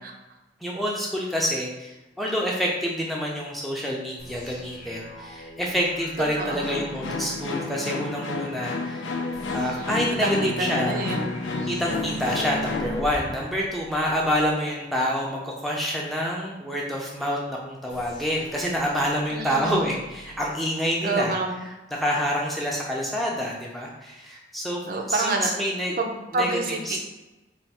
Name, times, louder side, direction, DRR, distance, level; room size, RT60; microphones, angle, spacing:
voice 1, 0.6-9.1 9.5-11.0 11.7-21.4 21.9-24.8 25.1-25.9 26.3-26.5 26.9-27.0, equal, ahead, -3 dB, 0.5 m, -27 dB
sound 1, 4.2-7.5 9.3-14.5 17.9-20.5, equal, 40° left, 0.8 m, -43 dB
voice 2, 6.4-6.7 10.2-11.2 19.3-19.9 21.0-21.6 24.9-25.5 26.0-27.0, right 3 dB, 50° right, 2 dB, 0.5 m, -27 dB
sound 2, 6.6-13.0, left 3 dB, 85° left, 0.5 m, -30 dB
3.3 x 2.4 x 4.2 m, 1.1 s
head